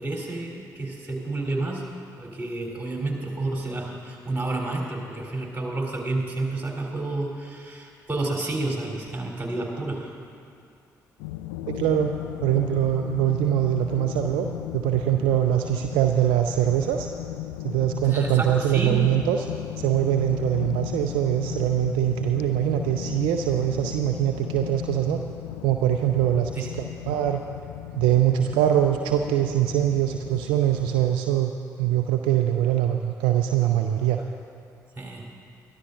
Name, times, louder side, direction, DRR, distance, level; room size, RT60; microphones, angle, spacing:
voice 1, 0.0-1.8 2.2-10.1 18.0-19.0 26.6-26.7 35.0-35.3, right 2 dB, 20° right, -2 dB, 3.6 m, -30 dB
sound 1, 11.2-31.1, left 13 dB, 70° left, 0.4 m, -36 dB
voice 2, 11.7-12.1 12.4-14.5 14.7-17.1 17.6-19.5 19.8-25.2 25.6-27.4 27.9-31.5 31.8-34.2, right 11 dB, 65° right, 5 dB, 0.5 m, -23 dB
22.5 x 13.5 x 2.6 m, 2.4 s
figure-of-eight pair, 45°, 9 cm